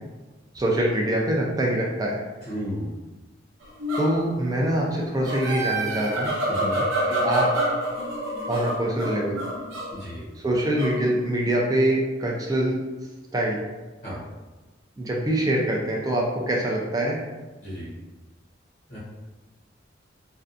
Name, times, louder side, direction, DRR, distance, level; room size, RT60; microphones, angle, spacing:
voice 1, 0.5-2.2 4.0-6.3 7.1-7.5 8.5-9.4 10.4-12.8 13.3-13.6 15.0-17.2, right 1 dB, 20° right, -2 dB, 0.3 m, -24 dB
voice 2, 2.4-2.9 6.5-6.8 9.9-10.2 14.0-14.2 17.6-17.9 18.9-19.0, equal, 45° left, -8 dB, 0.7 m, -33 dB
sound 1, 3.6-4.3 4.9-10.0 10.7-11.5, right 1 dB, 80° right, 0.6 m, -28 dB
2.6 x 2.2 x 2.4 m, 1.2 s
head